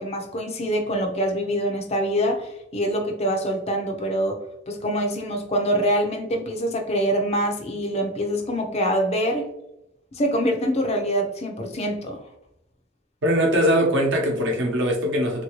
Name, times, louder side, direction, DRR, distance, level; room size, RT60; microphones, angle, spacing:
voice 1, 0.0-9.5 10.1-12.2, equal, 35° left, 3 dB, 0.5 m, -25 dB
voice 2, 13.2-15.4, equal, 65° right, 1 dB, 0.8 m, -21 dB
3.2 x 2.7 x 3.0 m, 0.84 s
head